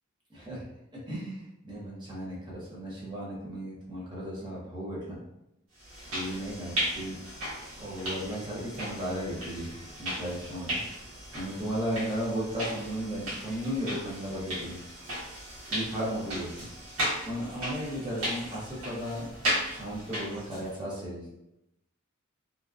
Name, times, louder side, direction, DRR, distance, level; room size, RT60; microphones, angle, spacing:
voice 1, 1.1-5.2 6.1-7.2 7.8-9.7 10.0-10.8 11.3-14.8 15.7-16.7 17.3-19.3 19.7-21.2, equal, 20° right, -6 dB, 0.7 m, -35 dB
sound 1, 5.8-20.8, equal, 75° right, 1.1 m, -36 dB
2.7 x 2.2 x 2.3 m, 0.89 s
head